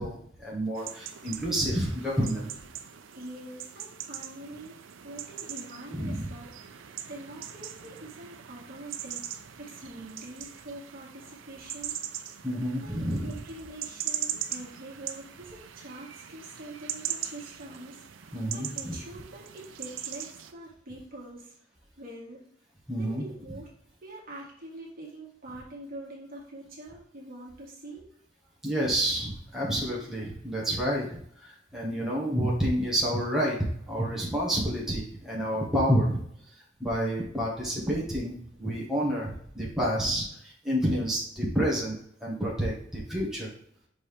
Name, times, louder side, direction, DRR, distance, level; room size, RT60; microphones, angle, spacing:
voice 1, 0.0-2.5 5.9-6.3 12.4-13.4 18.3-18.9 22.9-23.3 28.6-36.2 36.8-43.5, equal, ahead, -5 dB, 1.6 m, -29 dB
sound 1, 0.7-20.5, right 10 dB, 90° right, 0.6 m, -40 dB
voice 2, 3.1-6.8 7.1-9.2 9.6-12.0 12.2-12.5 12.8-12.9 13.2-21.5 22.0-22.4 23.0-23.7 24.0-28.1, right 1 dB, 50° right, -4 dB, 2.0 m, -44 dB
6.0 x 5.2 x 3.5 m, 0.66 s
head